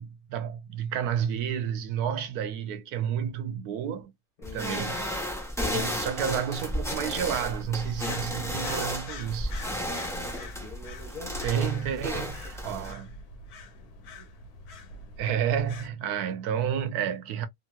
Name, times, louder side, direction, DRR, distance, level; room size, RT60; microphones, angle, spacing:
voice 1, 0.0-4.1 4.5-9.5 11.4-13.2 14.2-14.3 15.2-17.5, right 8 dB, 85° right, 1.1 m, -31 dB
voice 2, 4.4-4.8 7.8-8.3 10.0-12.5, left 2 dB, 30° left, 1.3 m, -46 dB
sound 1, 4.4-12.9, left 1 dB, 5° left, 0.6 m, -33 dB
sound 2, 7.2-15.9, left 2 dB, 80° left, 1.3 m, -44 dB
2.9 x 2.9 x 2.2 m
omnidirectional pair, 1.6 m